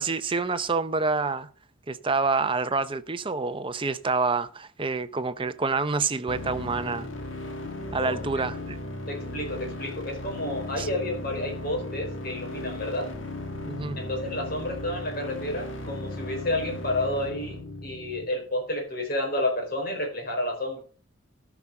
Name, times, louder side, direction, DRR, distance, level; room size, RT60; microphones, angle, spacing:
voice 1, 0.0-1.5 1.9-7.1 7.9-8.8 10.8-10.9 13.7-14.0, right 4 dB, 25° right, 0.7 m, -27 dB
sound 1, 6.3-18.3, left 1 dB, 65° left, 1.8 m, -36 dB
voice 2, 7.9-8.2 9.1-13.1 14.0-20.8, left 1 dB, 50° left, 4.5 m, -30 dB
13.5 x 6.1 x 5.3 m
head